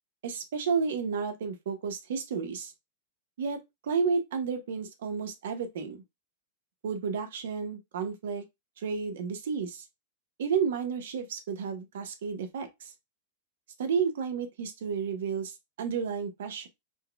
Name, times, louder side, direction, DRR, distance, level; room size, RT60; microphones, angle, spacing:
voice 1, 0.2-2.7 3.4-6.0 6.8-8.4 8.8-9.8 10.4-12.9 13.8-16.7, right 6 dB, 75° right, 1.1 m, -31 dB
4.5 x 2.3 x 3.4 m
supercardioid pair, 140°, 0 cm